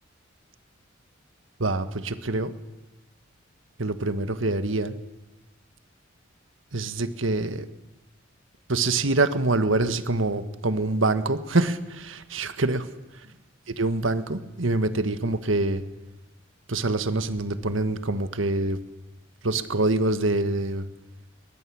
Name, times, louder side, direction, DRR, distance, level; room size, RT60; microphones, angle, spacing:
voice 1, 1.6-2.5 3.8-5.0 6.7-7.7 8.7-12.9 13.1-13.3 13.7-15.8 16.7-18.8 19.4-20.9, right 2 dB, 75° right, 11 dB, 1.6 m, -25 dB
21.0 x 21.0 x 8.7 m, 1.0 s
head